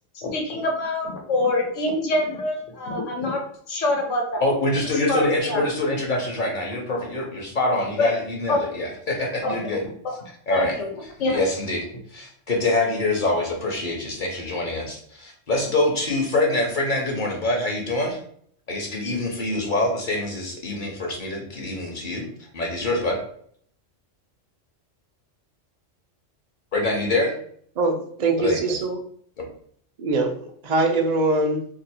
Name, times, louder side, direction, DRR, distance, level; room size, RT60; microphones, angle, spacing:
voice 1, 0.1-3.4 3.7-4.4 5.1-5.6 8.0-8.1 8.5-8.6 9.4-9.5 10.0-10.1 10.5-10.9 11.2-11.4, left 2 dB, 75° left, 1 dB, 1.2 m, -25 dB
voice 2, 4.4-9.8 10.5-10.8 11.3-18.2 18.7-23.2 26.7-27.3 28.4-28.8 29.4-29.5, left 2 dB, 45° left, 0 dB, 0.8 m, -25 dB
voice 3, 27.8-29.0 30.0-31.7, right 3 dB, 50° right, 3 dB, 0.5 m, -23 dB
2.7 x 2.4 x 4.2 m, 0.63 s
omnidirectional pair, 1.3 m